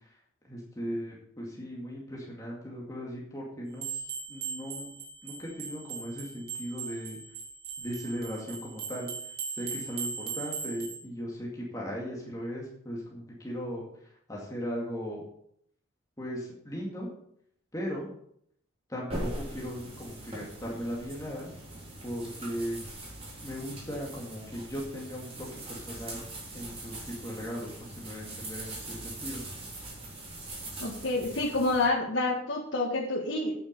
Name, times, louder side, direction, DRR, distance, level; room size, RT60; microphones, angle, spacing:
voice 1, 0.5-3.9 4.3-4.9 5.2-7.2 7.8-9.1 9.6-13.8 14.3-15.2 16.2-17.1 17.7-18.1 18.9-21.5 22.0-22.8 23.4-26.2 26.5-29.4, equal, 20° left, -3 dB, 2.3 m, -37 dB
sound 1, 3.8-11.0, right 6 dB, 55° right, 2.6 m, -39 dB
sound 2, 19.1-31.9, right 1 dB, 30° right, 3.9 m, -41 dB
voice 2, 30.8-33.5, left 2 dB, 65° left, -4 dB, 1.8 m, -28 dB
9.1 x 8.8 x 5.4 m, 0.68 s
head